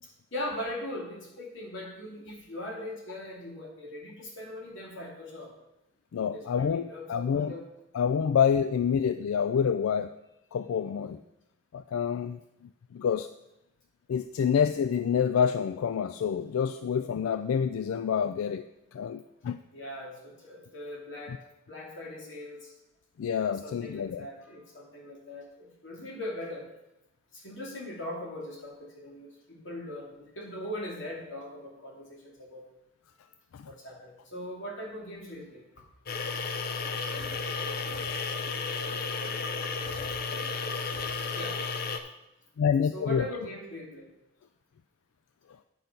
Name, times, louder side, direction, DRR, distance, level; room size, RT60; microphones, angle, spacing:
voice 1, 0.0-5.5 6.3-7.6 19.7-21.4 21.7-22.7 23.5-26.7 27.3-32.6 33.6-35.6 41.3-41.6 42.9-44.1, left 1 dB, 65° left, -2 dB, 2.5 m, -40 dB
voice 2, 6.1-7.6 7.9-10.1 10.5-11.2 11.7-12.4 12.9-13.3 14.1-18.7 18.9-19.6 21.3-21.4 23.2-24.3 33.5-33.7 42.6-43.3, left 7 dB, 90° left, 11 dB, 0.3 m, -27 dB
sound 1, 36.1-42.0, left 4 dB, 45° left, 0.6 m, -33 dB
8.8 x 5.8 x 5.3 m, 0.90 s
head